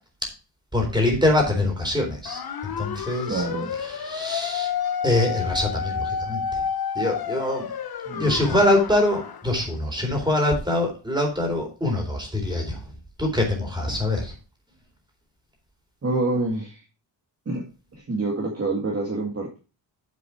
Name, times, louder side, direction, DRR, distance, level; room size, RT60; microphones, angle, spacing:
voice 1, 0.7-3.5 3.8-4.7 5.0-6.6 6.9-7.7 8.2-12.8 13.2-14.3, left 1 dB, 10° right, 1 dB, 4.0 m, -24 dB
sound 1, 2.3-9.5, left 7 dB, 55° left, 1.0 m, -30 dB
voice 2, 3.3-3.7 8.1-8.4 16.0-16.8 17.5-17.6 17.9-19.6, right 2 dB, 30° right, -2 dB, 2.2 m, -27 dB
8.4 x 7.6 x 4.7 m, 0.33 s
wide cardioid pair, 155°, 45 cm